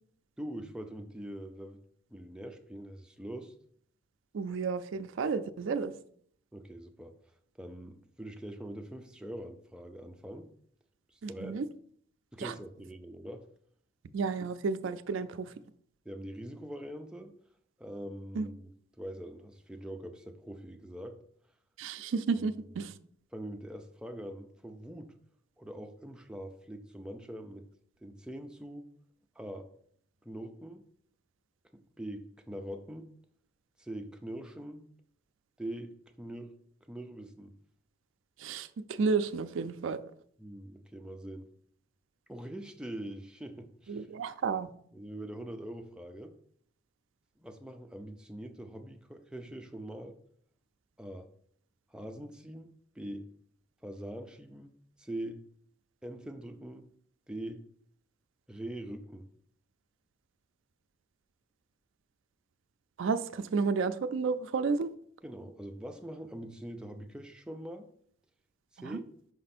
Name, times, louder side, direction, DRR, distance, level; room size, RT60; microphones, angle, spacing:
voice 1, 0.4-1.8 2.1-3.5 6.5-7.2 7.6-10.5 11.1-11.6 12.3-13.5 16.1-17.3 17.8-21.2 22.4-22.9 23.3-25.1 25.6-27.6 28.0-28.9 29.4-29.7 30.2-30.8 31.7-33.1 33.8-34.9 35.6-36.5 36.9-37.5 40.4-41.5 42.3-44.1 44.9-46.4 47.4-50.2 51.0-51.3 51.9-53.3 53.8-55.4 56.0-56.9 57.3-57.6 58.5-59.3 65.2-67.9 68.7-69.1, right 1 dB, 5° right, 0.4 m, -43 dB
voice 2, 4.3-5.9 11.2-11.7 12.4-12.5 14.1-15.5 18.4-18.5 21.8-22.9 38.4-40.1 43.9-44.7 63.0-64.9 68.8-69.0, right 5 dB, 70° right, 0.4 m, -32 dB
5.7 x 4.3 x 4.2 m
head